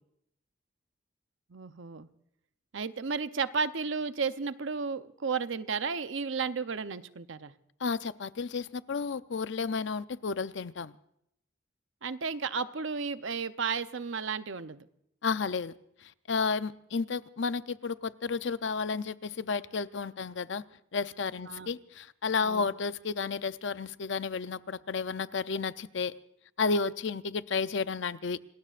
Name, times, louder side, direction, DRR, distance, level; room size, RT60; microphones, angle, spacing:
voice 1, 1.5-2.1 2.7-7.5 12.0-14.9 21.5-21.7 22.4-22.7, right 5 dB, 70° right, 0.7 m, -33 dB
voice 2, 7.8-10.9 15.2-15.7 16.0-20.6 20.9-26.2 26.6-28.4, left 4 dB, 65° left, 0.5 m, -32 dB
27.5 x 20.0 x 2.5 m
head